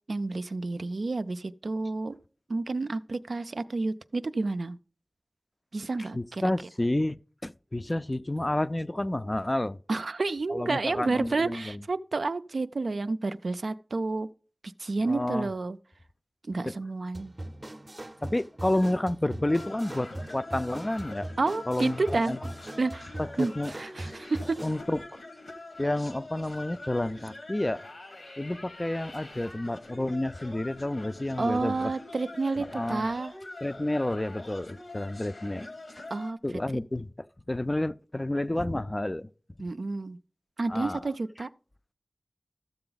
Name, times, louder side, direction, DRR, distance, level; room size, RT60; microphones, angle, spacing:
voice 1, 0.1-2.2 2.5-4.8 5.7-6.4 9.9-14.3 14.8-15.8 16.5-17.3 21.4-22.4 22.8-24.6 31.4-33.3 36.1-36.4 39.6-40.2 40.6-41.5, right 3 dB, 85° right, 0.4 m, -30 dB
voice 2, 6.1-9.8 10.5-11.8 15.0-15.5 16.7-16.8 18.2-21.3 21.7-22.4 23.2-23.7 24.6-25.2 25.8-27.9 28.4-31.9 32.7-33.1 33.6-35.7 36.0-36.1 36.4-39.3 40.7-41.1, left 1 dB, 30° left, 0.4 m, -30 dB
sound 1, 17.1-24.8, right 1 dB, 35° right, 0.6 m, -41 dB
sound 2, 19.5-36.3, left 2 dB, 85° left, 1.3 m, -45 dB
13.0 x 6.8 x 3.9 m
wide cardioid pair, 50°, 0 cm